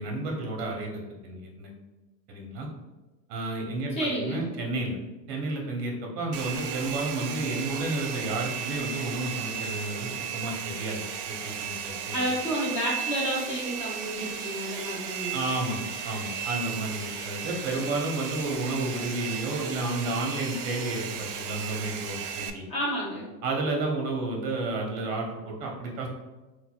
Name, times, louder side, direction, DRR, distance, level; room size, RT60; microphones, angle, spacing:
voice 1, 0.0-1.7 2.3-2.7 3.3-5.0 5.3-11.0 11.3-12.3 15.3-22.6 23.4-26.1, right 2 dB, 40° right, 0 dB, 0.8 m, -31 dB
voice 2, 4.0-4.4 12.1-15.4 22.7-23.3, equal, 15° left, -4 dB, 0.5 m, -30 dB
Domestic sounds home sounds, 6.3-22.5, right 7 dB, 65° right, 0.5 m, -35 dB
3.9 x 2.3 x 2.3 m, 1.1 s
hypercardioid pair, 135°, 49 cm